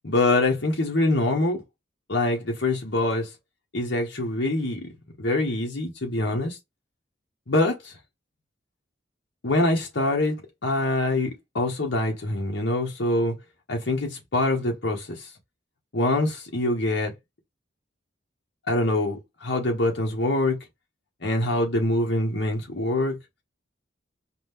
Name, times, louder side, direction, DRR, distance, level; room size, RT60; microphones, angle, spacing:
voice 1, 0.0-1.6 2.1-3.3 3.7-4.9 5.2-6.6 7.5-7.7 9.4-10.4 10.6-13.3 13.7-15.1 15.9-17.1 18.7-20.6 21.2-23.2, left 2 dB, 60° left, 1.1 m, -24 dB
5.0 x 2.3 x 3.5 m
head